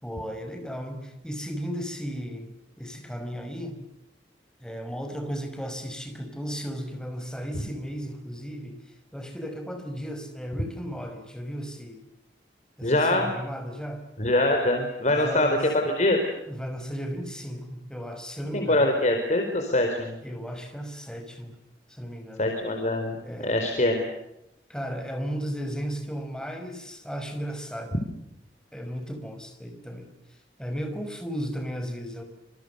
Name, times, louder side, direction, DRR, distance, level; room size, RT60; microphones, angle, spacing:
voice 1, 0.0-3.8 4.6-12.0 12.8-14.0 15.1-15.6 16.5-18.9 20.2-21.5 21.9-22.4 23.2-23.6 24.7-28.0 28.7-32.2, equal, 5° left, 6 dB, 5.4 m, -35 dB
voice 2, 12.8-13.3 14.2-15.6 15.8-16.2 18.5-20.1 22.4-24.0, left 1 dB, 40° left, 4 dB, 4.4 m, -24 dB
27.5 x 27.5 x 6.9 m, 0.84 s
head